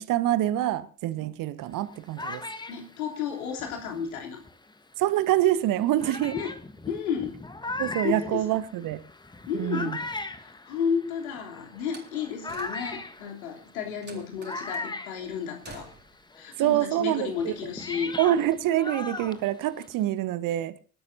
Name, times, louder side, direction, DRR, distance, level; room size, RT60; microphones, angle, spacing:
voice 1, 0.0-2.4 5.0-6.4 7.8-9.0 9.5-10.0 14.1-14.2 16.6-17.5 18.2-20.8, right 13 dB, 45° right, 1.3 m, -26 dB
sound 1, 1.7-4.7 5.4-5.5 6.0-16.0 16.3-20.1, left 3 dB, 10° left, 1.3 m, -39 dB
voice 2, 2.7-4.4 6.3-6.5 6.9-7.4 8.0-8.4 9.5-10.0 10.4-15.9 16.3-18.2, left 6 dB, 70° left, 3.3 m, -32 dB
Slam, 11.8-13.2 14.0-14.9 15.6-16.3, right 4 dB, 25° right, 3.9 m, -49 dB
26.0 x 12.5 x 2.7 m
figure-of-eight pair, 65°, 45 cm